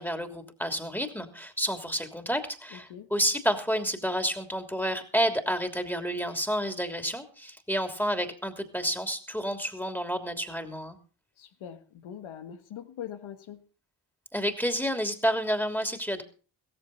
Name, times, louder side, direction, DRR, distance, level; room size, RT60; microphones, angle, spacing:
voice 1, 0.0-11.0 14.3-16.2, equal, 5° left, 3.0 m, -30 dB
voice 2, 2.7-3.1 11.4-13.6, left 9 dB, 85° left, 1.5 m, -42 dB
16.0 x 15.0 x 4.2 m
supercardioid pair, 45°, 47 cm